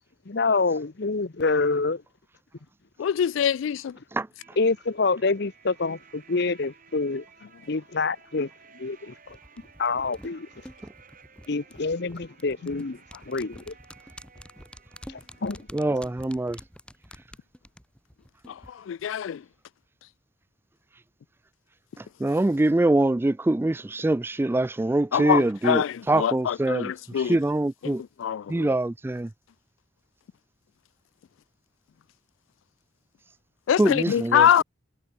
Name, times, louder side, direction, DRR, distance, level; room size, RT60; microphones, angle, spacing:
voice 1, 0.3-2.0 4.6-7.2 7.7-8.5 8.7-9.4 9.8-10.5 11.5-13.0 13.3-13.7 15.1-15.9, left 3 dB, 60° left, 0.9 m, -27 dB
voice 2, 3.0-4.0 12.7-12.8 18.5-19.4 25.1-27.4 27.8-28.7 33.7-34.6, left 9 dB, 80° left, 0.3 m, -24 dB
sound 1, 4.4-17.0, right 6 dB, 45° right, 6.6 m, -56 dB
sound 2, 9.3-18.7 19.0-19.1, left 1 dB, 5° left, 3.7 m, -48 dB
voice 3, 15.7-16.6 22.2-26.9 27.3-28.0 28.5-29.3 33.8-34.6, right 2 dB, 10° right, 0.3 m, -24 dB
head